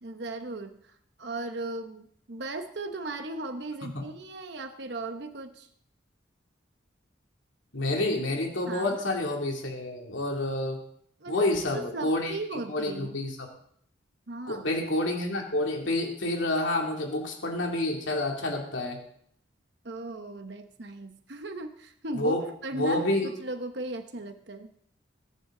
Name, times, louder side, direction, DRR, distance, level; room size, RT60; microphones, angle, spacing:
voice 1, 0.0-0.8 1.2-5.7 8.7-9.0 11.2-13.1 14.3-14.7 19.8-24.7, right 2 dB, 60° right, 7 dB, 1.0 m, -37 dB
voice 2, 7.7-10.8 11.3-13.5 14.5-19.0 22.1-22.4 22.7-23.3, left 1 dB, 75° left, 0 dB, 2.8 m, -29 dB
22.0 x 10.5 x 3.9 m, 0.67 s
head